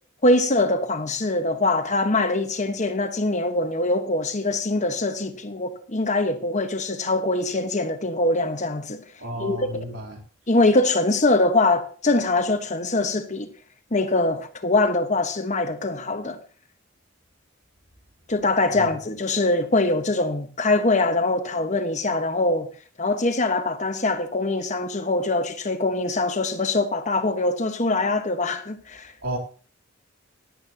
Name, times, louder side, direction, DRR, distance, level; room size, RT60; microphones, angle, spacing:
voice 1, 0.2-9.0 9.4-10.0 10.5-13.5 13.9-16.4 18.3-22.7 23.0-29.1, left 2 dB, 35° left, 1.3 m, -23 dB
voice 2, 9.2-10.2 18.8-19.0 29.2-29.4, right 1 dB, 70° right, 3.5 m, -32 dB
17.5 x 11.0 x 2.9 m
head